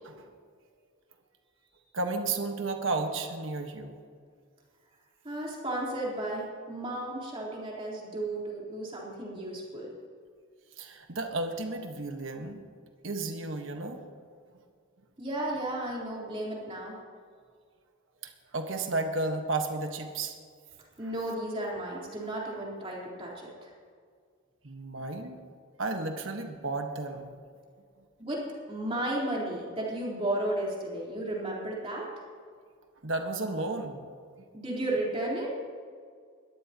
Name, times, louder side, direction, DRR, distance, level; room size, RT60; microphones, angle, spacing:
voice 1, 1.9-4.0 10.8-12.6 13.0-14.0 18.2-20.3 24.6-25.4 25.8-27.3 33.0-34.0, right 3 dB, 65° right, 4 dB, 1.4 m, -33 dB
voice 2, 5.2-9.9 15.2-17.0 21.0-23.7 28.2-32.1 34.5-35.5, right 1 dB, 25° right, -5 dB, 3.7 m, -34 dB
21.0 x 14.0 x 2.9 m, 2.1 s
head